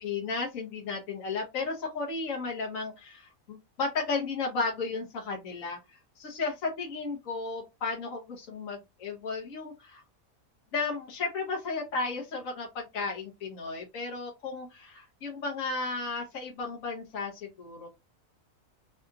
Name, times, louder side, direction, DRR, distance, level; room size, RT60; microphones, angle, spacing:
voice 1, 0.0-5.8 6.2-10.0 10.7-17.3 17.6-17.9, left 4 dB, 75° left, -1 dB, 1.4 m, -34 dB
3.4 x 2.4 x 2.7 m, 0.21 s
omnidirectional pair, 1.4 m